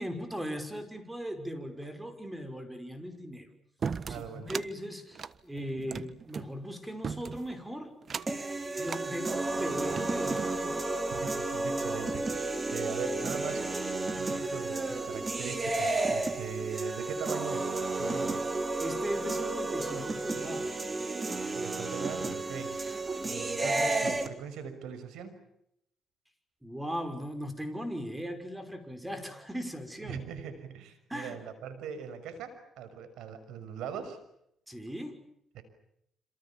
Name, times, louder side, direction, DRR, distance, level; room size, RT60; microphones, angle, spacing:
voice 1, 0.0-3.5 4.1-7.9 8.8-10.9 18.8-20.9 26.6-30.2 31.1-31.4 34.7-35.2, equal, 10° right, 9 dB, 5.9 m, -38 dB
sound 1, 3.8-4.7 5.1-6.5 7.0-7.5 8.0-8.4 8.8-9.1 9.7-10.6, right 6 dB, 45° right, 1.3 m, -37 dB
voice 2, 4.0-4.5 11.1-13.7 14.2-17.7 18.0-18.5 21.5-22.8 23.2-25.4 30.0-34.2 35.5-35.6, right 7 dB, 90° right, 11 dB, 6.0 m, -41 dB
sound 2, 8.3-24.3, right 2 dB, 25° right, 3.5 m, -32 dB
27.5 x 27.0 x 7.3 m, 0.75 s
cardioid pair, 90°, 0 cm